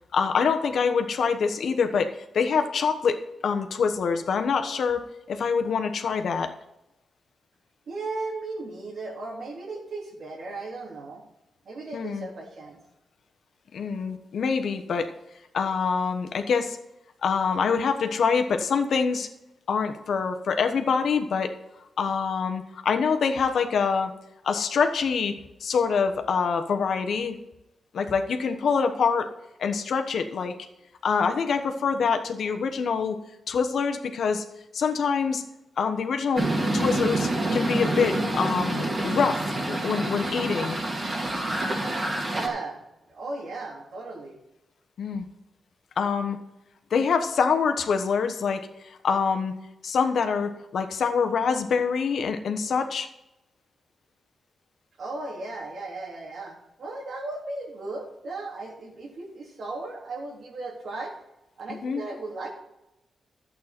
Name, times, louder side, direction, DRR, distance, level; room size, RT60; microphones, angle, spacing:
voice 1, 0.1-6.5 11.9-12.3 13.7-15.1 15.5-16.8 17.2-19.3 19.7-21.5 22.0-24.1 24.4-25.3 25.6-27.4 27.9-29.3 29.6-30.6 31.0-33.2 33.5-34.4 34.7-35.4 35.8-36.5 36.7-40.8 45.0-45.3 46.0-46.4 46.9-49.5 49.8-53.1 61.7-62.0, left 5 dB, 70° left, 7 dB, 1.1 m, -25 dB
voice 2, 7.9-11.2 11.6-12.8 42.2-42.8 43.1-44.4 55.0-61.2 61.6-62.5, right 3 dB, 70° right, -1 dB, 3.0 m, -36 dB
sound 1, 36.4-42.5, right 2 dB, 30° right, 2.3 m, -27 dB
11.5 x 8.3 x 4.3 m, 0.91 s
cardioid pair, 105°, 0 cm